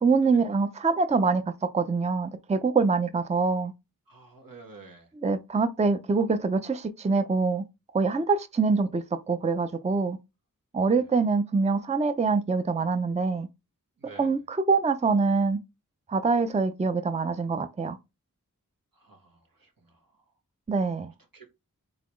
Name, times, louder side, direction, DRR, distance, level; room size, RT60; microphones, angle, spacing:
voice 1, 0.0-1.4 1.7-3.7 5.2-7.6 7.9-10.2 10.7-13.5 14.2-15.6 16.1-18.0 20.7-21.1, right 4 dB, 20° right, 0.5 m, -25 dB
voice 2, 4.1-5.1 10.9-11.1 14.0-14.4 18.9-20.2 21.3-21.5, right 3 dB, 85° right, 1.5 m, -50 dB
4.1 x 3.8 x 3.1 m
wide cardioid pair, 45°, 34 cm